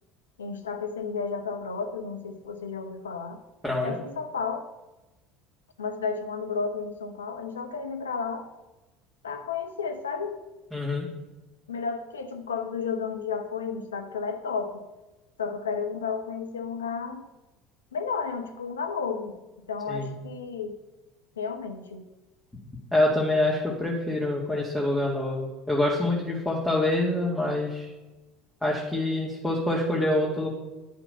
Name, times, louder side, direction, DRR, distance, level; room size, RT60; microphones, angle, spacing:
voice 1, 0.4-3.4 3.8-4.7 5.8-8.5 9.2-10.4 11.7-14.8 15.4-17.3 17.9-19.4 19.7-20.8 21.4-22.1, left 5 dB, 85° left, 7 dB, 0.9 m, -32 dB
voice 2, 3.6-4.0 10.7-11.1 19.9-20.2 22.9-27.9 28.6-30.5, left 1 dB, 10° left, -4 dB, 2.0 m, -26 dB
10.5 x 5.6 x 5.6 m, 1.1 s
hypercardioid pair, 70°, 0 cm